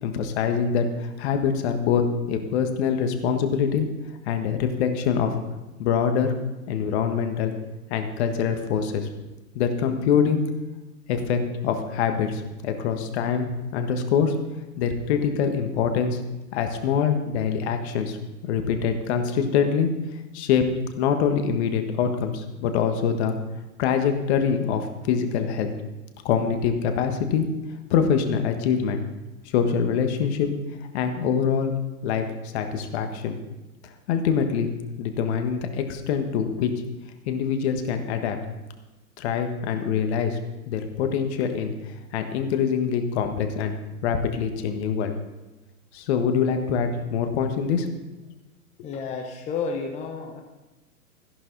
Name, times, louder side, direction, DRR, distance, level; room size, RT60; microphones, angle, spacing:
voice 1, 0.0-3.9 4.3-5.3 5.8-6.3 6.7-7.5 7.9-9.1 9.5-10.4 11.1-14.3 14.8-16.2 16.5-18.2 18.4-19.9 20.3-20.7 21.0-23.3 23.8-25.7 26.2-27.5 27.9-29.0 29.5-30.5 30.9-31.7 32.0-32.2 32.5-33.4 34.1-34.7 35.0-36.7 37.3-38.4 39.2-40.4 40.7-41.7 42.1-43.8 44.0-45.1 45.9-47.9, left 7 dB, 45° left, 6 dB, 1.6 m, -24 dB
voice 2, 48.8-50.4, left 5 dB, 15° left, 2 dB, 0.8 m, -31 dB
14.0 x 11.0 x 4.0 m, 1.1 s
hypercardioid pair, 130°, 45 cm